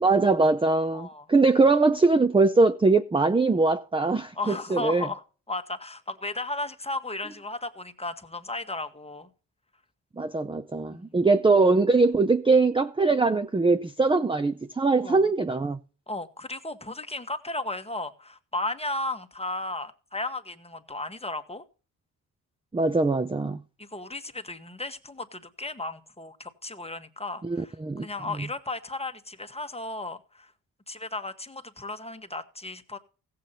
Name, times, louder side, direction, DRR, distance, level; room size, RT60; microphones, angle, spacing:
voice 1, 0.0-5.1 10.2-15.8 22.7-23.6 27.4-28.1 28.4-28.5, right 3 dB, 15° right, 0.5 m, -22 dB
voice 2, 0.9-1.3 4.3-9.3 10.9-11.1 15.0-15.2 16.1-21.6 23.4-30.5 30.9-33.0, left 2 dB, 15° left, 1.2 m, -35 dB
15.0 x 7.8 x 4.1 m
supercardioid pair, 55°, 42 cm